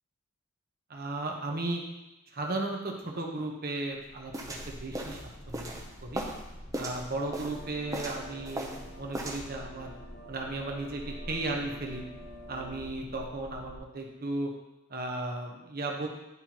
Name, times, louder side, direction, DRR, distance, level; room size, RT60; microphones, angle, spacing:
voice 1, 0.9-1.8 2.3-4.3 4.7-5.2 5.5-6.2 6.8-9.9 10.3-12.0 12.5-14.5 14.9-16.1, right 2 dB, 45° right, 1 dB, 1.0 m, -35 dB
sound 1, 4.0-13.8, equal, 20° left, 1.1 m, -47 dB
sound 2, 4.3-6.4 6.7-7.6 7.9-8.9 9.1-9.4, right 1 dB, 15° right, 0.7 m, -37 dB
sound 3, 7.2-12.9, equal, 45° left, 0.8 m, -49 dB
11.0 x 4.3 x 3.0 m, 0.97 s
head